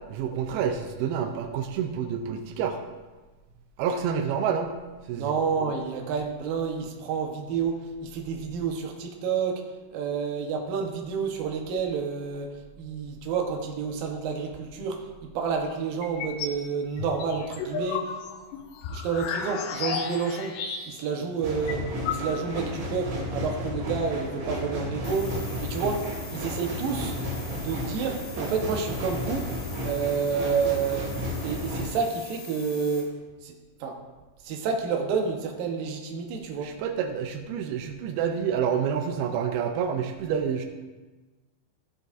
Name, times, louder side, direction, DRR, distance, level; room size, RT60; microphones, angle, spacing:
voice 1, 0.1-2.8 3.8-4.7 5.1-5.2 36.6-40.7, right 7 dB, 90° right, 5 dB, 2.2 m, -28 dB
voice 2, 5.1-18.1 18.9-20.6 20.9-27.2 27.5-29.6 29.8-31.2 31.4-33.5 33.8-34.0 34.4-36.8, right 5 dB, 70° right, 2 dB, 2.3 m, -29 dB
sound 1, 16.0-16.6 17.0-21.2 21.4-21.5 21.7-22.7, left 6 dB, 80° left, 2.9 m, -33 dB
sound 2, 21.4-31.9, left 1 dB, 50° right, 2.9 m, -33 dB
sound 3, 25.0-33.0, left 3 dB, 65° left, 3.9 m, -44 dB
17.0 x 6.8 x 2.6 m, 1.3 s
omnidirectional pair, 5.3 m